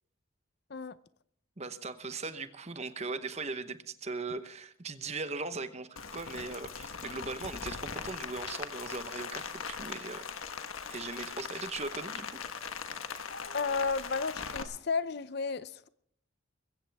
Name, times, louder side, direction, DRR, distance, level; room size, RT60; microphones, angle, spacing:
voice 1, 1.6-10.2 10.9-12.4, right 3 dB, 30° right, 1.0 m, -39 dB
Rain, 6.0-14.6, left 6 dB, 85° left, 1.4 m, -40 dB
voice 2, 13.5-15.9, left 4 dB, 50° left, 0.6 m, -33 dB
21.5 x 16.0 x 3.5 m
head